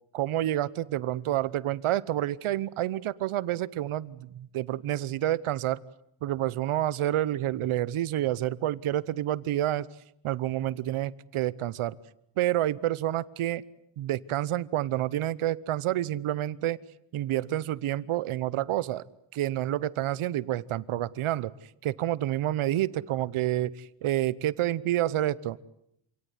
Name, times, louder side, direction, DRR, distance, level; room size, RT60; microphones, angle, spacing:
voice 1, 0.1-5.8 6.2-9.9 10.2-12.0 12.4-13.6 14.0-16.8 17.1-19.0 19.3-21.5 21.8-25.6, right 13 dB, 75° right, 19 dB, 1.0 m, -28 dB
27.0 x 18.0 x 9.6 m, 0.75 s
cardioid pair, 120°, 49 cm